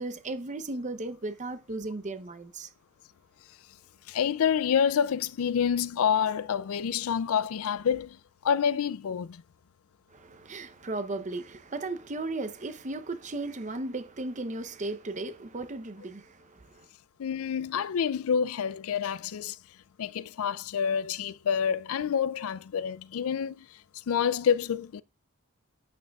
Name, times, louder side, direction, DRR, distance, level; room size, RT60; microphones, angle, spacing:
voice 1, 0.0-2.7 10.1-16.8, right 2 dB, 35° right, 0.7 m, -36 dB
voice 2, 4.1-8.2 8.4-9.4 17.2-19.6 20.0-23.7 24.1-25.0, left 7 dB, 65° left, 0.4 m, -28 dB
11.5 x 8.6 x 2.3 m
head